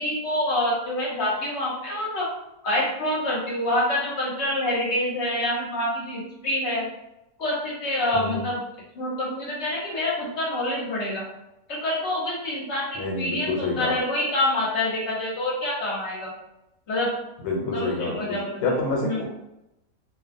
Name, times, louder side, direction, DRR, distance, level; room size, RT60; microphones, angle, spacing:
voice 1, 0.0-2.3 2.6-6.9 7.4-8.6 8.9-11.2 11.7-16.3 16.9-17.1 17.7-18.7 19.0-19.2, left 1 dB, 55° left, -5 dB, 0.9 m, -26 dB
voice 2, 13.0-14.0 17.4-19.2, left 3 dB, 90° left, -1 dB, 1.1 m, -28 dB
2.4 x 2.1 x 2.4 m, 0.89 s
omnidirectional pair, 1.6 m